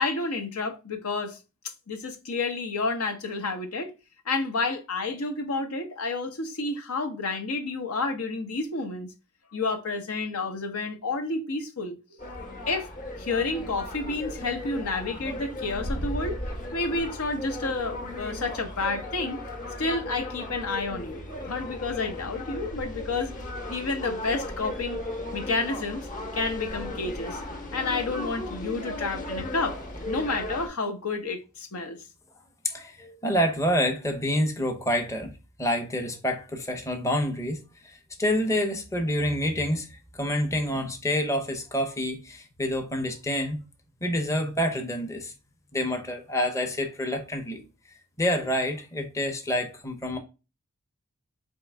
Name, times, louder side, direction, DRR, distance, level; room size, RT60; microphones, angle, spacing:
voice 1, 0.0-1.4 1.9-3.9 4.3-9.1 9.5-12.2 12.7-12.9 13.2-16.3 16.7-19.4 19.8-25.0 25.3-26.1 26.3-27.4 27.7-29.8 30.0-32.0, left 3 dB, 80° left, 0.9 m, -30 dB
sound 1, 12.2-30.7, left 1 dB, 40° left, 0.9 m, -36 dB
voice 2, 32.6-35.3 35.6-43.6 44.0-45.3 45.7-47.6 48.2-50.2, equal, 15° left, 0.7 m, -27 dB
4.5 x 3.0 x 3.3 m
head